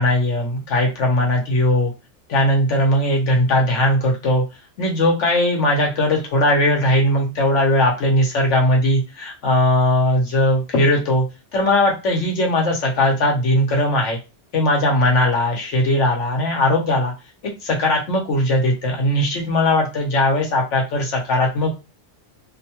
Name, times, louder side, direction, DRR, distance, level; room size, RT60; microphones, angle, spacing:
voice 1, 0.0-1.9 2.3-4.4 4.8-11.3 11.5-14.2 14.5-17.1 17.6-21.7, left 1 dB, 80° left, 0 dB, 1.1 m, -19 dB
2.6 x 2.2 x 2.8 m, 0.28 s
omnidirectional pair, 1.2 m